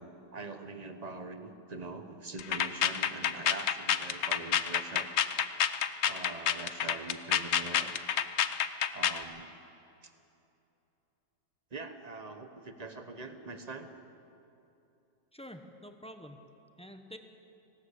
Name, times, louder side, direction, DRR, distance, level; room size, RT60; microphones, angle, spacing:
voice 1, 0.0-5.1 6.1-7.9 8.9-9.5 10.0-10.1 11.7-13.9, right 3 dB, 30° right, 8 dB, 0.9 m, -43 dB
sound 1, 2.4-9.2, left 9 dB, 80° left, 0.6 m, -29 dB
voice 2, 15.3-16.4 16.8-17.2, equal, 5° left, 6 dB, 0.5 m, -47 dB
19.0 x 17.0 x 8.3 m, 2.9 s
omnidirectional pair, 2.1 m